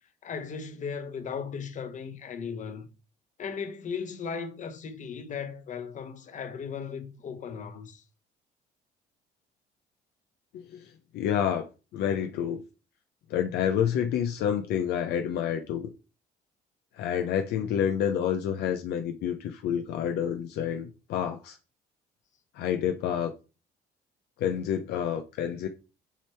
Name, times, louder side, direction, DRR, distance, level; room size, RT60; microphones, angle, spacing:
voice 1, 0.2-2.9 3.4-8.0, left 6 dB, 45° left, 1.3 m, -37 dB
voice 2, 10.5-11.6 11.9-12.6 13.3-15.9 17.0-21.6 22.5-23.3 24.4-25.7, left 9 dB, 80° left, 0.7 m, -28 dB
7.4 x 3.4 x 4.5 m
cardioid pair, 110°, 17 cm